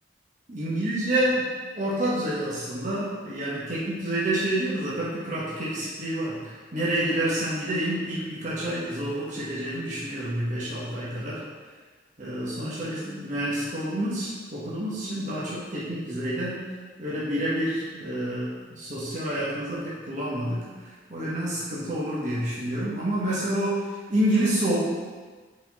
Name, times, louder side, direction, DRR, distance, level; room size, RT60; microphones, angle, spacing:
voice 1, 0.5-1.4 1.7-11.4 12.2-16.6 17.0-18.5 18.8-20.6 21.1-23.8 24.1-24.9, right 1 dB, 45° right, -8 dB, 1.3 m, -28 dB
5.5 x 4.3 x 4.1 m, 1.4 s
head